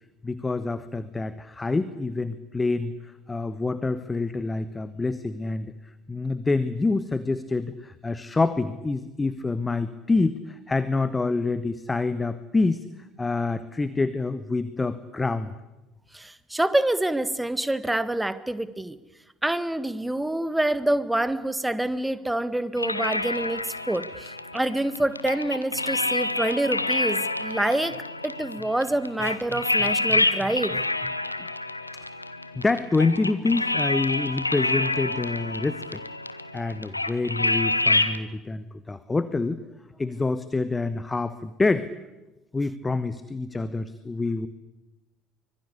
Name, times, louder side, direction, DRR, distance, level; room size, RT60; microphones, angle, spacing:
voice 1, 0.2-2.9 3.3-5.7 6.1-12.8 13.2-15.5 31.4-31.5 32.5-36.0 36.5-39.6 40.0-41.9 42.5-44.5, left 3 dB, 15° left, 14 dB, 1.3 m, -27 dB
voice 2, 16.1-19.0 19.4-28.0 28.2-31.1, right 1 dB, 5° right, 14 dB, 1.6 m, -27 dB
sound 1, 22.8-38.2, left 2 dB, 85° left, 0.9 m, -28 dB
25.0 x 22.0 x 8.5 m, 1.0 s
figure-of-eight pair, 60°, 0 cm